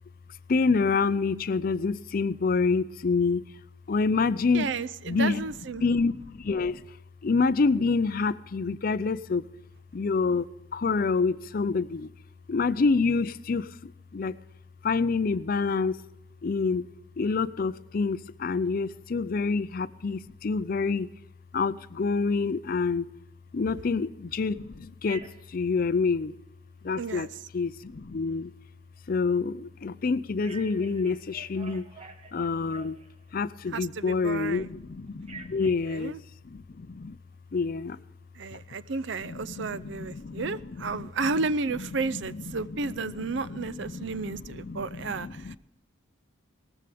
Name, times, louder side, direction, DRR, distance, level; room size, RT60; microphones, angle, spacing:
voice 1, 0.5-3.4 3.9-4.7 5.1-5.4 5.8-6.9 7.2-9.4 9.9-10.5 10.7-12.1 12.5-14.4 14.8-16.0 16.4-16.9 17.2-21.1 21.5-23.1 23.5-26.3 26.8-27.3 27.5-28.5 29.1-31.9 32.3-33.0 33.3-36.1 36.4-37.2 37.5-38.0 38.5-38.6 39.2-41.1 42.1-42.2 42.7-45.6, left 4 dB, 45° left, 16 dB, 0.4 m, -27 dB
voice 2, 4.5-5.8 27.0-27.3 33.7-34.7 35.9-36.2 38.4-45.6, right 4 dB, 60° right, 17 dB, 0.5 m, -32 dB
Telephone, 25.0-25.6 30.4-33.3 35.2-35.7, right 4 dB, 30° right, 1.2 m, -47 dB
18.0 x 14.5 x 3.5 m, 0.95 s
head